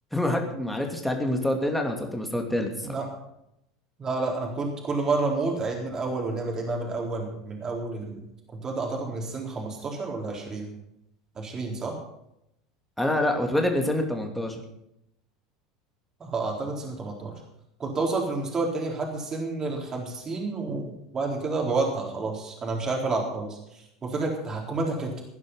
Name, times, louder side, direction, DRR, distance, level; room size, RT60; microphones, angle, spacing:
voice 1, 0.1-3.0 13.0-14.6, left 1 dB, 5° left, 3 dB, 2.7 m, -26 dB
voice 2, 4.0-8.2 8.5-10.7 11.4-11.9 16.2-17.4 17.8-25.3, right 3 dB, 25° right, 0 dB, 4.0 m, -30 dB
17.0 x 11.0 x 5.6 m, 0.81 s
figure-of-eight pair, 75°, 2 cm